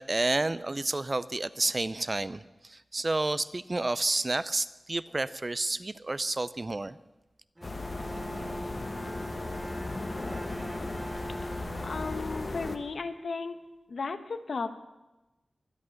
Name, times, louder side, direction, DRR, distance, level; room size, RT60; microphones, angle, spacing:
voice 1, 0.0-7.0, right 2 dB, 35° right, 16 dB, 0.5 m, -30 dB
sound 1, 7.6-12.8, left 2 dB, 40° left, 1.1 m, -36 dB
Bowed string instrument, 7.6-13.5, right 1 dB, 20° right, 2.2 m, -42 dB
voice 2, 11.8-13.6 13.9-14.7, left 4 dB, 85° left, 9 dB, 1.0 m, -35 dB
23.5 x 8.4 x 6.5 m, 1.0 s
wide cardioid pair, 85°, 0 cm